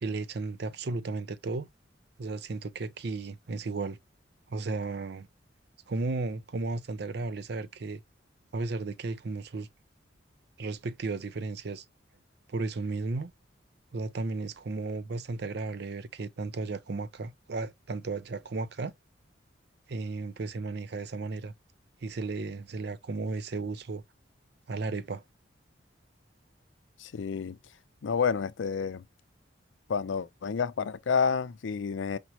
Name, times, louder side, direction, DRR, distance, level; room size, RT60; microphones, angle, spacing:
voice 1, 0.0-1.7 2.2-4.0 4.5-5.3 5.9-8.0 8.5-9.7 10.6-11.8 12.5-13.3 13.9-18.9 19.9-21.5 22.0-24.0 24.7-25.2, right 3 dB, 60° right, 0.5 m, -34 dB
voice 2, 27.0-27.6 28.0-29.0 29.9-32.2, left 6 dB, 80° left, 0.5 m, -29 dB
5.1 x 3.0 x 2.9 m
head